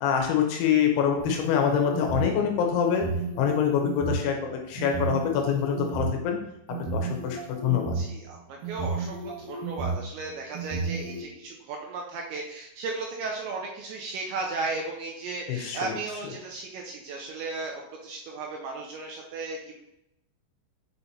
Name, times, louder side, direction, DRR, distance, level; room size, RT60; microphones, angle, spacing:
voice 1, 0.0-3.1 3.4-6.4 6.9-7.9 15.5-16.0, left 8 dB, 80° left, 2 dB, 3.0 m, -25 dB
sound 1, 1.2-2.3 2.9-4.2 4.8-6.1 6.7-8.1 8.6-10.0 10.5-11.2, right 4 dB, 65° right, 2.4 m, -32 dB
voice 2, 7.9-19.7, right 3 dB, 80° right, 0 dB, 2.7 m, -35 dB
6.9 x 5.6 x 2.8 m, 0.85 s
omnidirectional pair, 5.7 m